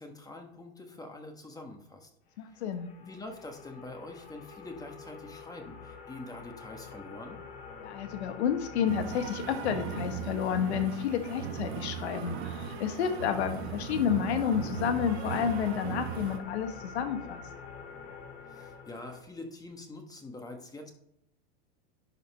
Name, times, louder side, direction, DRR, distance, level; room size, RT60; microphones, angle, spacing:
voice 1, 0.0-2.1 2.5-2.6 3.0-7.4 18.5-20.9, left 2 dB, 10° left, 4 dB, 1.5 m, -45 dB
voice 2, 2.4-2.9 7.8-17.4, left 8 dB, 85° left, 7 dB, 1.5 m, -30 dB
sound 1, 2.4-19.2, left 5 dB, 70° left, 3.1 m, -47 dB
sound 2, 8.9-16.4, right 8 dB, 70° right, 1.6 m, -38 dB
11.0 x 4.2 x 5.6 m, 0.77 s
supercardioid pair, 130°, 32 cm